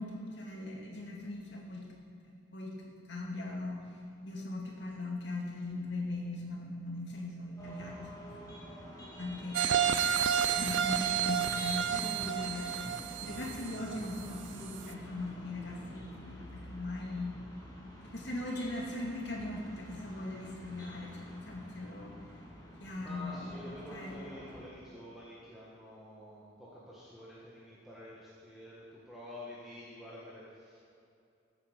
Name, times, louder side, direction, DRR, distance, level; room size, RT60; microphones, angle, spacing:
voice 1, 0.0-1.9 2.5-3.8 4.2-8.5 9.2-9.6 10.6-12.9 13.2-17.4 18.0-22.1 22.8-23.5 23.9-24.2, left 2 dB, 65° left, -1 dB, 2.2 m, -39 dB
sound 1, 7.6-24.6, equal, 20° left, 2.3 m, -48 dB
sound 2, 9.5-14.3 14.7-14.8, right 8 dB, 75° right, 0.5 m, -31 dB
voice 2, 23.0-30.8, left 1 dB, ahead, -8 dB, 1.6 m, -49 dB
14.5 x 8.6 x 5.2 m, 2.5 s
head